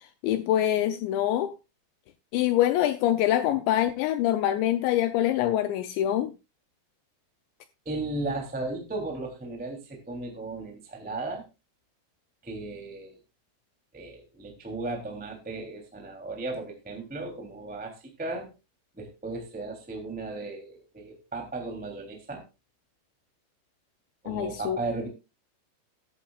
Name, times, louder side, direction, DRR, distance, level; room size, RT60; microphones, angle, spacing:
voice 1, 0.2-1.5 2.3-6.3 24.3-24.8, left 12 dB, 80° left, 2.6 m, -25 dB
voice 2, 7.8-11.4 12.4-13.1 13.9-18.5 18.9-22.4 24.2-25.1, right 2 dB, 5° right, 1.7 m, -35 dB
14.5 x 12.5 x 2.4 m
omnidirectional pair, 5.9 m